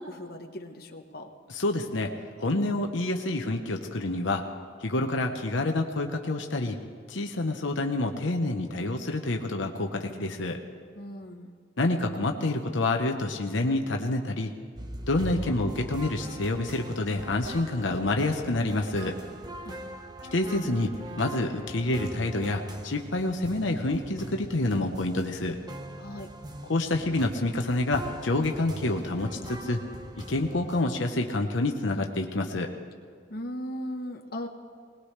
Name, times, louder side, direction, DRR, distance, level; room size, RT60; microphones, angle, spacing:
voice 1, 0.0-1.3 10.9-11.6 19.6-19.9 26.0-26.3 33.3-34.5, equal, 50° left, 3 dB, 1.1 m, -38 dB
voice 2, 1.5-2.1 2.4-4.4 4.8-6.8 7.1-10.6 11.8-14.5 15.1-19.2 20.3-20.9 21.2-25.6 26.7-29.8 30.3-32.7, left 2 dB, 75° left, 3 dB, 1.0 m, -28 dB
sound 1, 14.8-30.8, right 1 dB, 20° right, 0.9 m, -41 dB
21.0 x 20.0 x 3.3 m, 2.1 s
head